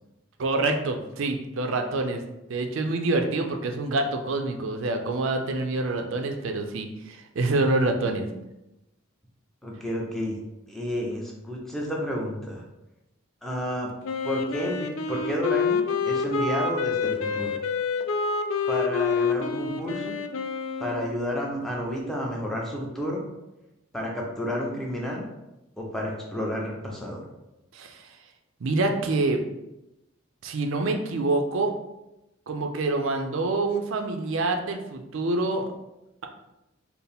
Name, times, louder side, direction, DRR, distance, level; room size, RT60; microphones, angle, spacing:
voice 1, 0.4-2.2 2.5-8.3 27.7-28.0 28.6-29.4 30.4-31.7 32.5-35.7, right 2 dB, 65° right, 5 dB, 0.4 m, -26 dB
voice 2, 9.6-10.4 10.7-12.6 13.4-13.9 14.2-17.6 18.7-20.1 20.8-23.2 23.9-25.3 25.8-27.2, equal, ahead, -2 dB, 0.6 m, -31 dB
Wind instrument woodwind instrument, 14.0-21.1, left 5 dB, 65° left, 0.3 m, -27 dB
4.5 x 2.0 x 3.4 m, 0.93 s
head